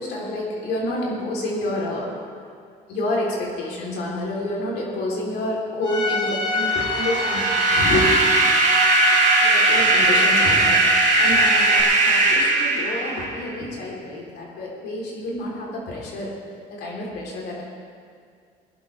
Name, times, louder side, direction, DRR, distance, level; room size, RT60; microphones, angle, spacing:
voice 1, 0.0-2.1 2.9-8.4 9.1-16.3 16.7-17.6, left 1 dB, 80° left, -3 dB, 3.9 m, -28 dB
Bowed string instrument, 5.8-11.8, left 3 dB, 25° left, 2.1 m, -25 dB
sound 1, 6.5-13.5, right 3 dB, 45° right, 2.5 m, -19 dB
21.0 x 11.0 x 3.5 m, 2.2 s
cardioid pair, 110°, 17 cm